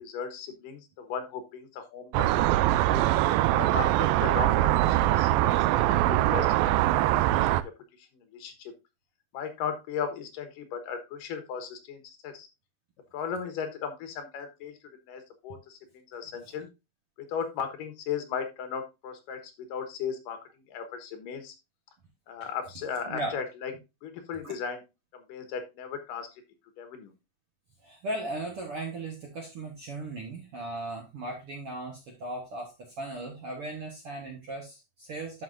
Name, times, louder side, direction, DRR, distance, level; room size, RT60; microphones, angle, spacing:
voice 1, 0.0-3.0 3.5-7.5 8.1-8.7 9.3-12.5 13.1-14.7 15.1-15.8 16.1-16.7 17.2-20.4 20.7-21.6 22.3-23.7 24.0-24.8 25.1-26.3 26.8-27.1, left 7 dB, 70° left, 7 dB, 2.7 m, -36 dB
sound 1, 2.1-7.6, right 15 dB, 80° right, 2.2 m, -23 dB
voice 2, 16.2-16.6 23.0-23.3 24.4-24.5 27.8-35.4, right 2 dB, 65° right, 1 dB, 1.4 m, -37 dB
11.5 x 5.8 x 2.6 m, 0.25 s
omnidirectional pair, 4.3 m